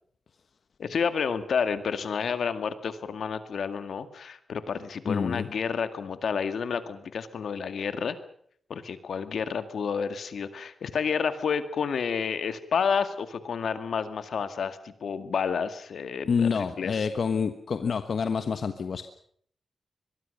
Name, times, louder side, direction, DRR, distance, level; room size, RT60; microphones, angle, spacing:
voice 1, 0.8-8.2 8.7-17.1, left 6 dB, 75° left, 10 dB, 2.1 m, -30 dB
voice 2, 5.0-5.5 16.2-19.0, left 6 dB, 60° left, 9 dB, 1.3 m, -27 dB
24.0 x 22.0 x 6.7 m, 0.63 s
wide cardioid pair, 150°, 0 cm